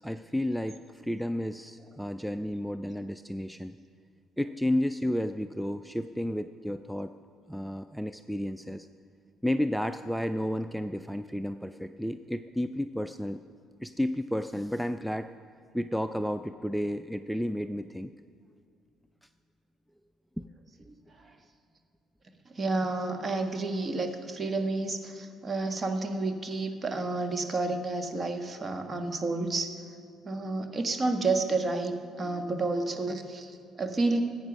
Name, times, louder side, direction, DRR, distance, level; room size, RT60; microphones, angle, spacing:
voice 1, 0.0-3.7 4.4-7.1 7.5-8.9 9.4-13.4 13.8-15.3 15.7-18.1, left 1 dB, ahead, 10 dB, 0.4 m, -32 dB
voice 2, 22.5-29.7 30.2-34.2, right 3 dB, 35° right, 6 dB, 1.4 m, -30 dB
14.0 x 8.7 x 6.1 m, 2.3 s
hypercardioid pair, 55°, 0 cm